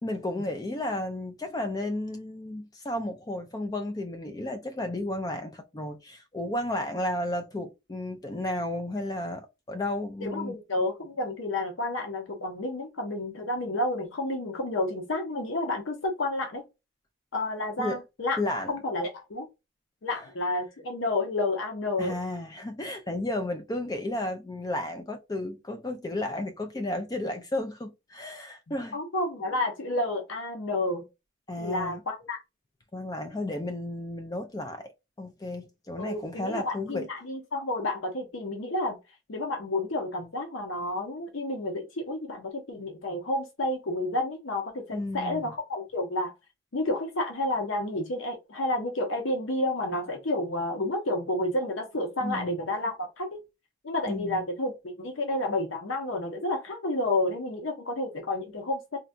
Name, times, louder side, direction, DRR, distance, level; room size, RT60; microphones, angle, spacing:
voice 1, 0.0-10.6 17.8-18.0 18.4-18.7 20.1-20.3 22.0-28.9 31.5-32.0 32.9-34.9 35.2-37.1 44.9-45.4 52.2-52.6 54.1-54.4, left 1 dB, 20° left, 0.3 m, -33 dB
voice 2, 10.2-16.6 17.3-18.4 18.7-19.5 20.0-22.1 28.7-31.0 31.6-32.4 36.0-39.0 39.3-46.3 46.7-53.4 53.8-59.0, left 2 dB, 80° left, 0.7 m, -30 dB
3.8 x 2.2 x 2.4 m
head